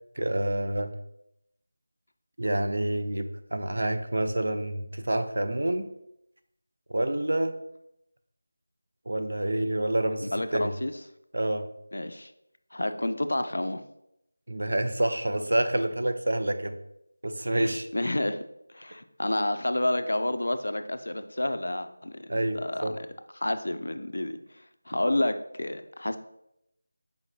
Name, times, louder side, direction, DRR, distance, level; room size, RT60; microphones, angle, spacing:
voice 1, 0.2-0.9 2.4-5.9 6.9-7.5 9.1-10.7 11.3-11.7 14.5-16.8 17.2-17.9 22.3-22.9, right 1 dB, 65° right, 9 dB, 0.4 m, -28 dB
voice 2, 10.3-10.9 11.9-12.3 12.7-13.8 17.6-18.4 18.7-23.0 23.4-24.4 24.9-26.2, left 1 dB, 80° left, 9 dB, 0.3 m, -29 dB
4.9 x 2.6 x 3.0 m, 0.80 s
figure-of-eight pair, 180°, 0 cm